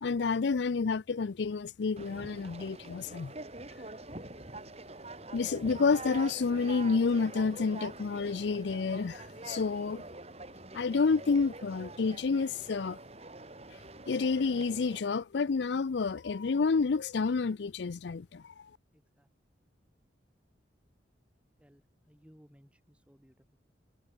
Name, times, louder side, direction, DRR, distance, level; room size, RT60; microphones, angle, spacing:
voice 1, 0.0-3.3 5.3-10.0 10.7-13.0 14.1-18.7, left 4 dB, 70° left, 0.5 m, -29 dB
Conversation, 2.0-15.0, right 2 dB, 35° right, 6.4 m, -45 dB
voice 2, 21.6-23.6, equal, 5° right, 3.8 m, -60 dB
head